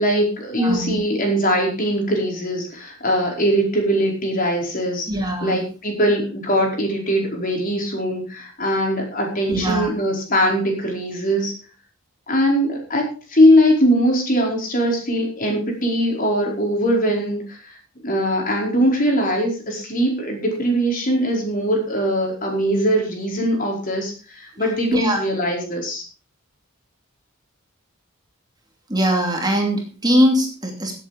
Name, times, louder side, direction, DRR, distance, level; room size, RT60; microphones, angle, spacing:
voice 1, 0.0-5.1 5.4-11.5 12.3-17.7 18.0-26.0, equal, 40° left, 1 dB, 4.9 m, -21 dB
voice 2, 0.6-1.0 5.1-5.6 9.5-9.9 24.6-25.3 28.9-30.9, equal, 20° right, 1 dB, 2.7 m, -21 dB
16.5 x 8.1 x 5.1 m, 0.36 s
head